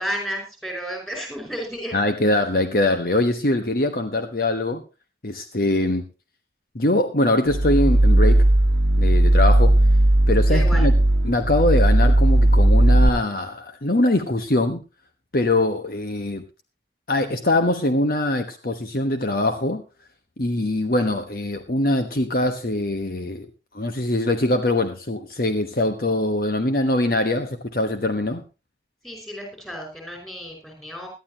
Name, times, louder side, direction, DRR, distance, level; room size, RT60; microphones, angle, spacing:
voice 1, 0.0-1.9 10.5-10.8 29.0-31.1, equal, 5° left, 2 dB, 5.4 m, -32 dB
voice 2, 1.9-4.8 5.2-6.1 6.7-8.5 9.0-9.7 10.3-10.9 11.2-14.8 15.3-16.4 17.1-19.8 20.4-28.4, left 1 dB, 50° left, 7 dB, 1.2 m, -22 dB
sound 1, 7.5-13.1, right 1 dB, 70° right, 1.1 m, -16 dB
18.5 x 12.0 x 2.9 m, 0.29 s
head